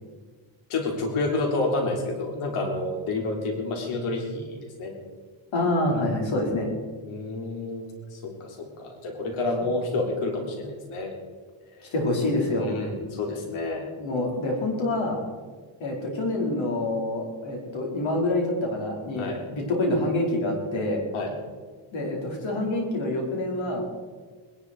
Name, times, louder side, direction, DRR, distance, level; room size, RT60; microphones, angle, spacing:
voice 1, 0.7-4.9 5.9-6.1 7.0-11.1 12.6-13.9 19.2-19.4 21.1-21.4, left 2 dB, 90° left, 3 dB, 3.3 m, -29 dB
voice 2, 5.5-6.7 11.9-12.7 14.0-15.2 15.8-21.0 21.9-23.8, left 1 dB, 65° left, 0 dB, 5.0 m, -26 dB
21.0 x 11.5 x 4.7 m, 1.5 s
cardioid pair, 70°, 49 cm